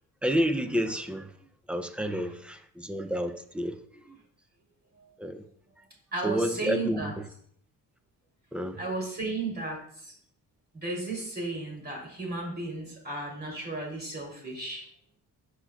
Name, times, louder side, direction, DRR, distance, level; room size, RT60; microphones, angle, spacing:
voice 1, 0.2-1.3 1.7-4.2 5.2-5.5 6.2-7.1 8.5-8.9, equal, 5° right, 0.4 m, -30 dB
voice 2, 6.1-7.1 8.8-10.1 10.7-14.8, right 3 dB, 30° right, 2.8 m, -34 dB
12.0 x 4.7 x 2.3 m
cardioid pair, 125°, 34 cm